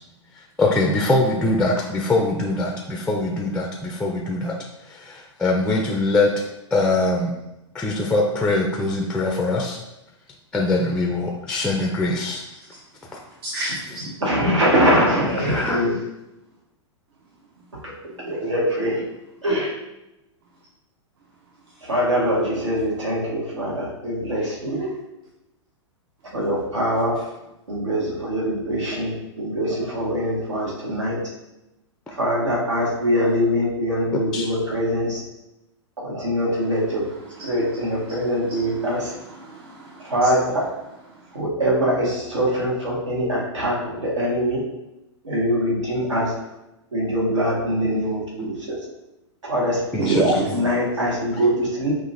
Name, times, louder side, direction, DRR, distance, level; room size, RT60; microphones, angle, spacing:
voice 1, 0.4-4.5 4.9-6.3 6.7-7.3 7.7-9.8 10.5-12.4 13.1-13.2 15.4-15.8 34.1-34.5 49.9-50.3, left 2 dB, 5° left, 0 dB, 0.4 m, -22 dB
voice 2, 13.4-14.1 15.4-15.7 39.4-40.1 50.0-50.6, right 4 dB, 55° right, -2 dB, 0.7 m, -28 dB
voice 3, 14.2-16.0 17.8-17.9 18.2-19.0 19.4-19.7 21.8-24.9 26.3-27.1 27.7-31.2 32.1-35.2 36.0-37.0 37.4-39.1 40.0-40.6 41.3-44.6 45.2-46.3 46.9-48.8 49.4-49.8 50.2-51.9, equal, 80° right, -5 dB, 1.4 m, -23 dB
5.6 x 2.5 x 2.5 m, 0.94 s
figure-of-eight pair, 105°, 15 cm